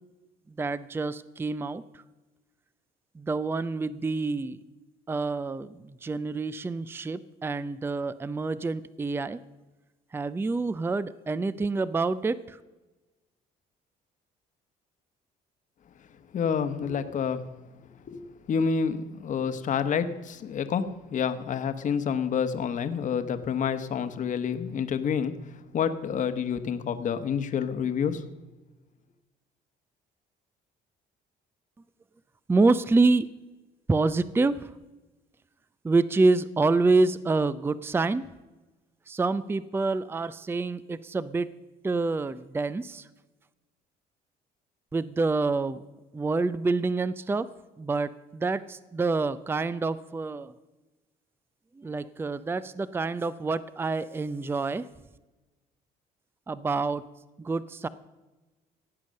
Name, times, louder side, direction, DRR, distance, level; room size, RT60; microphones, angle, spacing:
voice 1, 0.6-2.0 3.2-4.6 5.1-9.4 10.1-12.6 32.5-33.3 33.9-34.7 35.8-38.2 39.1-41.5 41.8-43.1 44.9-45.8 46.1-47.5 47.8-50.5 51.8-54.9 56.5-57.0 57.4-57.9, right 3 dB, 15° right, 16 dB, 0.5 m, -27 dB
voice 2, 16.3-17.4 18.1-18.2 18.5-25.3 25.7-28.2, left 7 dB, 50° left, 10 dB, 1.1 m, -28 dB
16.5 x 8.9 x 6.5 m, 1.1 s
cardioid pair, 110°, 17 cm